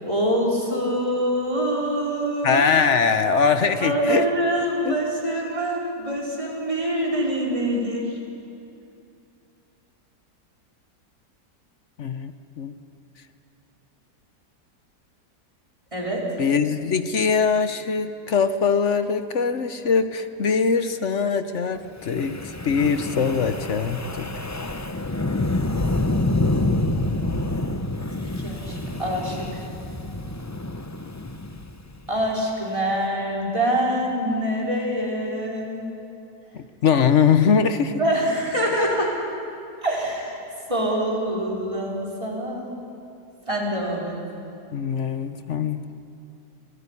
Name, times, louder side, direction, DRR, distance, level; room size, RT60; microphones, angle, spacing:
voice 1, 0.0-2.6 3.8-8.1 15.9-16.3 25.7-25.9 28.4-29.6 32.1-35.9 38.0-39.1 39.8-40.3 40.7-42.7 43.4-44.2, right 1 dB, 20° right, -3 dB, 4.7 m, -25 dB
voice 2, 2.4-4.2 4.8-5.0 12.0-12.7 16.4-24.3 36.5-38.0 44.7-45.8, left 6 dB, 50° left, 10 dB, 1.1 m, -22 dB
Wind, 22.0-32.3, left 2 dB, 20° left, 0.5 m, -27 dB
27.5 x 18.5 x 9.8 m, 2.6 s
omnidirectional pair, 1.8 m